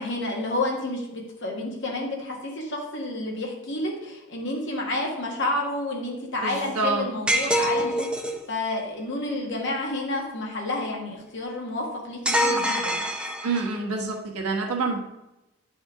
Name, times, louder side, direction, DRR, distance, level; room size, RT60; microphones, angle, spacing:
voice 1, 0.0-8.1 8.5-13.0, left 2 dB, 55° left, -1 dB, 1.6 m, -30 dB
voice 2, 6.4-7.1 13.4-15.0, right 3 dB, 85° right, 0 dB, 1.3 m, -27 dB
sound 1, 7.3-8.4 12.2-13.8, equal, 5° right, 0.5 m, -25 dB
9.3 x 4.3 x 3.7 m, 0.96 s
head